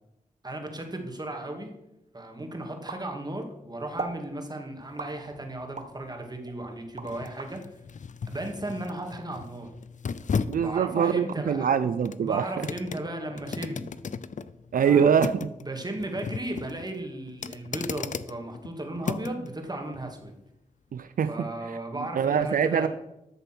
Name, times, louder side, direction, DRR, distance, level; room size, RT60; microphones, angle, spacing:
voice 1, 0.4-1.7 2.1-7.7 8.3-9.7 10.6-11.9 12.2-13.9 14.8-15.2 15.6-20.4 21.3-22.9, right 1 dB, 30° right, 3 dB, 2.5 m, -35 dB
sound 1, 2.9-3.6 4.0-4.2 5.0-6.0 6.5-7.5, right 3 dB, 55° right, 1.3 m, -38 dB
sound 2, 4.8-19.5 19.9-20.1, left 5 dB, 60° left, 0.5 m, -37 dB
voice 2, 10.5-12.5 14.7-15.5 20.9-21.3 21.7-21.8 22.2-22.9, right 7 dB, 80° right, 12 dB, 0.5 m, -23 dB
13.0 x 6.8 x 6.1 m, 0.88 s
wide cardioid pair, 75°, 14 cm